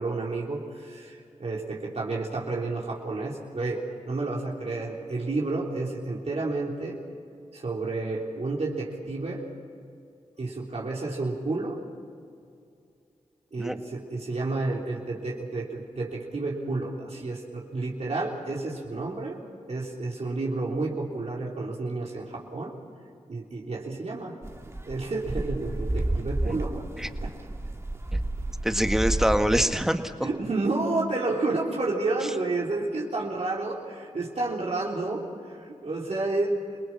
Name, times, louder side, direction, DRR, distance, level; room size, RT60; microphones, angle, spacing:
voice 1, 0.0-7.0 7.5-9.4 10.4-11.8 13.5-19.4 19.7-22.7 23.3-24.3 24.8-26.8 27.2-27.3 30.2-36.6, right 3 dB, 60° right, -3 dB, 3.5 m, -30 dB
sound 1, 24.4-29.6, right 1 dB, 20° right, 2.0 m, -31 dB
voice 2, 28.6-30.1, equal, 5° right, 7 dB, 1.7 m, -24 dB
27.5 x 19.0 x 6.1 m, 2.4 s
cardioid pair, 45°, 13 cm